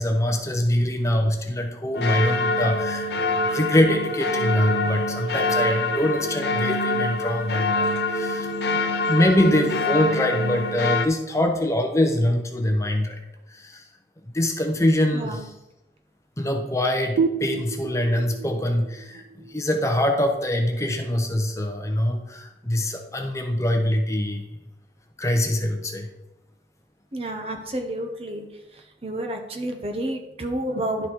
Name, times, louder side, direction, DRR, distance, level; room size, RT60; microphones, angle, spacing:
voice 1, 0.0-8.8 9.1-13.2 13.5-13.8 14.3-15.5 16.4-19.2 19.5-24.6 25.2-26.1, left 1 dB, 15° left, 3 dB, 0.8 m, -24 dB
sound 1, 1.9-11.1, left 2 dB, 70° left, 0.6 m, -25 dB
voice 2, 15.1-15.5 27.1-28.5 28.7-31.1, right 1 dB, 35° right, 4 dB, 0.7 m, -30 dB
sound 2, 17.2-20.6, right 5 dB, 85° right, 0.3 m, -30 dB
11.0 x 4.0 x 4.4 m, 0.93 s
head